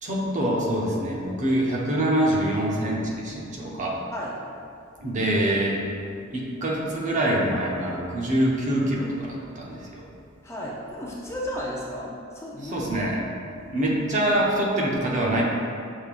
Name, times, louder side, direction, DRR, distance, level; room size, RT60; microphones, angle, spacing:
voice 1, 0.0-4.0 5.0-5.8 6.3-10.0 12.6-13.2 13.7-15.4, right 1 dB, 35° right, -3 dB, 0.7 m, -25 dB
voice 2, 10.4-12.9, equal, 15° left, -5 dB, 0.5 m, -34 dB
6.3 x 3.5 x 2.4 m, 2.5 s
head